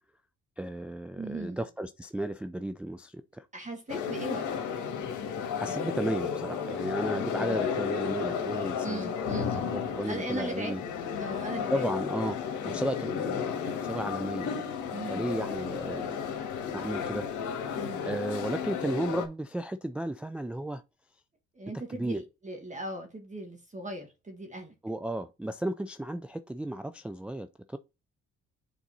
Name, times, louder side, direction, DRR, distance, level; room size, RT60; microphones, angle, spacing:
voice 1, 0.6-3.5 5.4-10.8 11.7-12.4 12.6-14.6 15.1-16.2 16.7-17.3 18.0-20.8 21.9-22.2 24.8-27.8, right 1 dB, 5° right, 0.3 m, -34 dB
voice 2, 1.2-1.7 3.5-4.6 7.4-7.7 8.8-9.7 10.1-10.8 11.1-11.8 12.6-12.8 14.9-15.3 17.8-18.1 21.5-24.7, right 1 dB, 25° right, 1.6 m, -38 dB
sound 1, 3.9-19.3, left 7 dB, 80° left, 1.7 m, -33 dB
7.4 x 4.1 x 4.0 m
cardioid pair, 90°, 30 cm